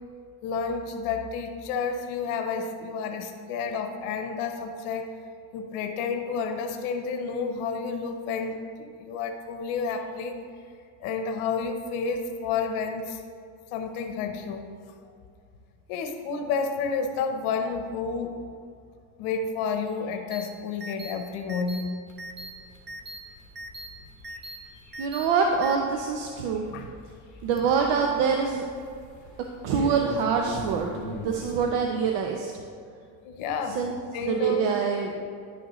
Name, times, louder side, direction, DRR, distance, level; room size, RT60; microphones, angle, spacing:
voice 1, 0.4-5.1 5.5-10.4 11.0-13.2 13.7-14.7 15.9-18.4 19.2-21.9 26.7-26.8 33.2-33.8 34.1-34.6, left 5 dB, 90° left, 5 dB, 0.9 m, -30 dB
sound 1, 20.3-20.4 20.8-21.1 21.5-21.8 22.2-22.5 22.9-23.2 23.6-23.9 24.2-24.6 24.9-25.2 25.6-25.7, right 1 dB, 25° right, 0.5 m, -39 dB
sound 2, 22.1-31.7, left 1 dB, 35° left, 1.6 m, -42 dB
voice 2, 25.0-26.9 27.4-28.6 29.6-32.5 33.7-33.9 34.3-35.1, right 6 dB, 60° right, 2 dB, 0.7 m, -25 dB
10.5 x 6.2 x 3.0 m, 2.2 s
cardioid pair, 145°, 48 cm